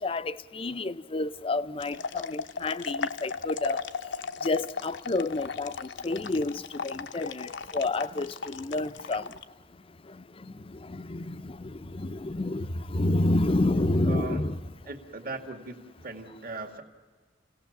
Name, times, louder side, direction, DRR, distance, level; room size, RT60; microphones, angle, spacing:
voice 1, 0.0-3.9 4.4-9.3 10.4-14.6, left 2 dB, 30° left, 0.6 m, -29 dB
sound 1, 1.8-9.4, left 5 dB, 70° left, 0.8 m, -36 dB
voice 2, 14.0-14.4 14.9-15.8 16.0-16.8, right 2 dB, 50° right, 2.0 m, -38 dB
29.0 x 17.5 x 7.2 m
head